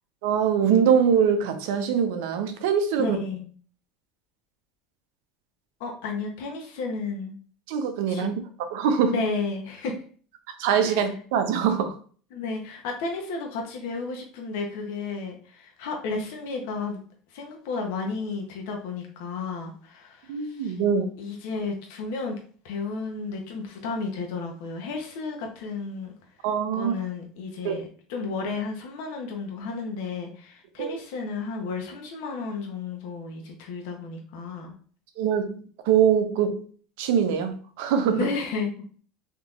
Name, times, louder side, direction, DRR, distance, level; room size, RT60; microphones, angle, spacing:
voice 1, 0.2-3.2 7.7-8.4 8.7-9.1 10.6-11.9 20.3-21.0 26.4-26.9 27.6-27.8 30.8-31.0 35.2-36.7 37.0-38.3, right 7 dB, 80° right, 0.6 m, -23 dB
voice 2, 3.0-3.5 5.8-7.4 8.1-8.3 9.1-9.9 10.8-11.2 12.3-17.0 17.3-20.8 21.2-22.4 22.6-26.1 26.7-34.7 38.1-38.7, left 4 dB, 75° left, 0.8 m, -33 dB
3.7 x 2.8 x 2.4 m
supercardioid pair, 130°, 0 cm